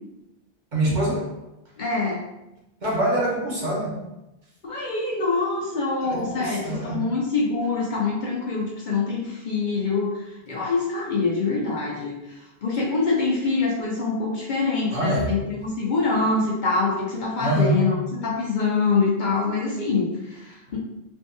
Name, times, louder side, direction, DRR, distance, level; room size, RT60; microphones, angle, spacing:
voice 1, 0.7-1.3 2.8-4.0 4.8-4.9 6.0-7.1 14.9-15.4 17.4-17.9, right 1 dB, 50° right, -5 dB, 0.9 m, -25 dB
voice 2, 1.8-2.2 4.6-20.8, left 4 dB, 55° left, -3 dB, 0.6 m, -25 dB
3.4 x 2.7 x 2.2 m, 0.95 s
omnidirectional pair, 1.1 m